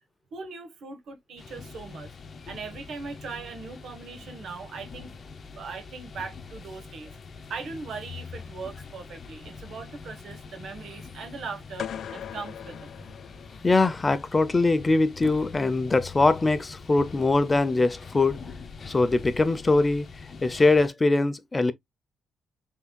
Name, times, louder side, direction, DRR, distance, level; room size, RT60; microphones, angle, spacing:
voice 1, 0.3-2.1 2.5-5.1 5.4-7.1 7.5-13.1, right 4 dB, 65° right, 1.4 m, -40 dB
sound 1, 1.4-20.9, left 5 dB, 40° left, 0.9 m, -44 dB
sound 2, 11.8-13.9, left 9 dB, 65° left, 0.5 m, -39 dB
voice 2, 13.6-18.4 18.9-20.1 20.4-21.7, left 3 dB, 25° left, 0.6 m, -22 dB
5.4 x 3.6 x 2.2 m
cardioid pair, 90°, 0 cm